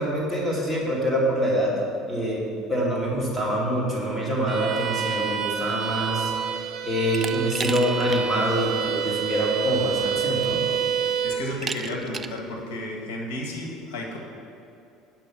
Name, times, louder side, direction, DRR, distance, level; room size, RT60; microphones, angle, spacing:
voice 1, 0.0-1.7 2.1-10.6, right 1 dB, 5° left, -5 dB, 2.5 m, -25 dB
Bowed string instrument, 4.5-11.5, right 8 dB, 50° right, 0.7 m, -28 dB
Glass, 7.1-8.2 8.6-8.7 9.9-10.0 10.4-10.8 11.6-12.4, right 5 dB, 25° right, 0.4 m, -34 dB
voice 2, 11.0-14.2, left 1 dB, 85° left, 0 dB, 1.7 m, -33 dB
9.2 x 6.1 x 6.1 m, 2.6 s
supercardioid pair, 120°, 0 cm